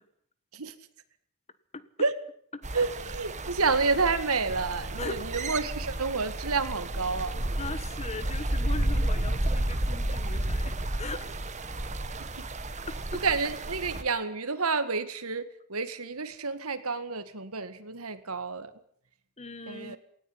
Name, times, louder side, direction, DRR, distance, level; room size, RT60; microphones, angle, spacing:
sound 1, 2.6-14.0, right 1 dB, 35° right, 1.7 m, -32 dB
voice 1, 2.7-7.3 12.2-12.5 13.2-15.4 15.7-18.7 19.7-20.0, right 4 dB, 80° right, 11 dB, 1.9 m, -29 dB
voice 2, 5.0-5.3 7.6-11.4 12.9-13.2 19.4-20.0, left 3 dB, 30° left, 15 dB, 1.4 m, -39 dB
19.0 x 18.0 x 9.7 m, 0.64 s
head